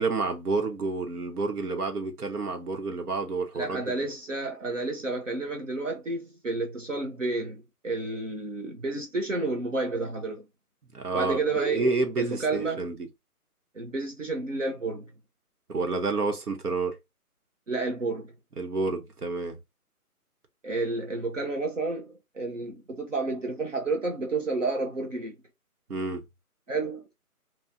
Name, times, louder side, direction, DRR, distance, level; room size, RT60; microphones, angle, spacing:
voice 1, 0.0-3.8 10.9-13.0 15.7-17.0 18.6-19.6 25.9-26.2, right 3 dB, 75° right, 1.2 m, -29 dB
voice 2, 3.5-10.4 11.1-12.9 13.7-15.1 17.7-18.3 20.6-25.3 26.7-27.0, right 3 dB, 55° right, 0.9 m, -30 dB
3.7 x 2.4 x 2.7 m
hypercardioid pair, 180°, 45 cm